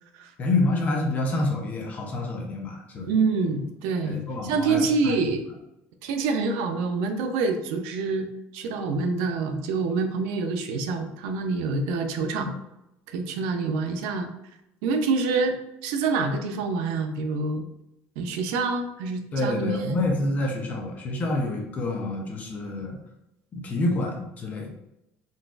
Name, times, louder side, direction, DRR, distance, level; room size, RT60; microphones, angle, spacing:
voice 1, 0.4-3.1 4.0-5.1 12.4-12.5 19.3-23.0 23.5-24.7, left 2 dB, 35° left, 1 dB, 0.6 m, -27 dB
voice 2, 3.1-5.4 6.0-8.3 8.5-12.5 13.1-14.3 14.8-17.7 18.2-20.0, right 4 dB, 85° right, 6 dB, 0.4 m, -26 dB
3.9 x 2.4 x 2.4 m, 0.86 s
cardioid pair, 135°, 5 cm